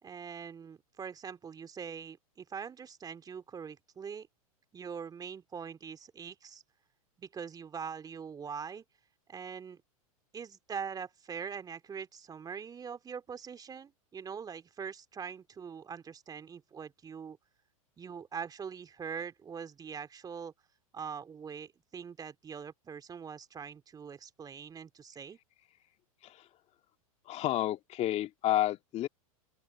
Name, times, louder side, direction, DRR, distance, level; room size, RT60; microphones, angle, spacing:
voice 1, 0.0-4.3 4.7-6.6 7.2-8.8 9.3-9.8 10.3-17.4 18.0-20.5 20.9-25.4, right 6 dB, 20° right, 2.7 m, -43 dB
voice 2, 27.3-29.1, left 13 dB, 35° left, 2.3 m, -30 dB
open air
hypercardioid pair, 105°, 18 cm